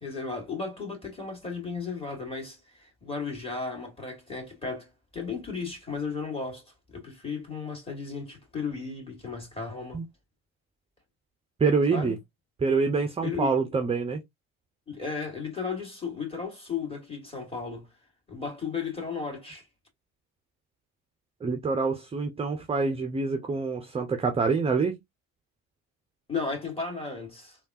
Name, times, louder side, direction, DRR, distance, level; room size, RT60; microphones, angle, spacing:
voice 1, 0.0-10.0 11.9-12.2 13.2-13.6 14.9-17.9 18.3-19.6 26.3-27.6, left 5 dB, 15° left, 2.1 m, -35 dB
voice 2, 11.6-12.2 12.6-14.2 21.4-25.0, right 4 dB, 15° right, 0.5 m, -26 dB
3.4 x 2.4 x 2.6 m
hypercardioid pair, 60°, 43 cm